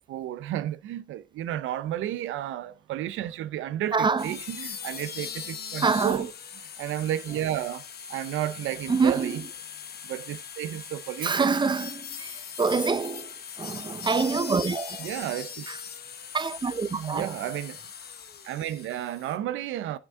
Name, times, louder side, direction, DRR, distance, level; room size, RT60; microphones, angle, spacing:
voice 1, 0.0-6.3 6.8-9.4 10.0-11.5 15.0-15.7 16.9-17.8 18.4-20.0, right 12 dB, 90° right, 0.7 m, -32 dB
voice 2, 3.9-4.3 5.8-6.3 8.9-9.4 11.2-15.1 15.7-15.8 16.3-17.4, right 4 dB, 25° right, 0.6 m, -26 dB
sound 1, 4.2-19.4, left 7 dB, 55° left, 1.1 m, -40 dB
9.2 x 6.1 x 3.6 m
cardioid pair, 90°, 20 cm